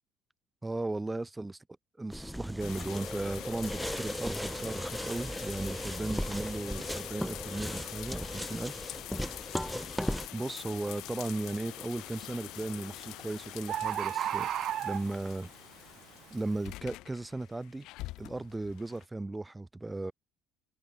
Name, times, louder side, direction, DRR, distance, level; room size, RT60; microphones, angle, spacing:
voice 1, 0.6-1.6 2.0-8.8 10.3-14.5 14.8-15.5 16.3-17.9 18.2-20.1, right 2 dB, 15° right, 2.8 m, -36 dB
sound 1, 2.1-10.3, equal, ahead, 1.4 m, -37 dB
sound 2, 2.6-19.0, left 18 dB, 70° left, 3.7 m, -45 dB
Bird, 10.4-10.7 11.2-11.7 12.7-12.8 13.0-13.1 13.3-13.4 13.7-15.4 16.0-16.1, right 11 dB, 55° right, 0.4 m, -33 dB
supercardioid pair, 75°, 0 cm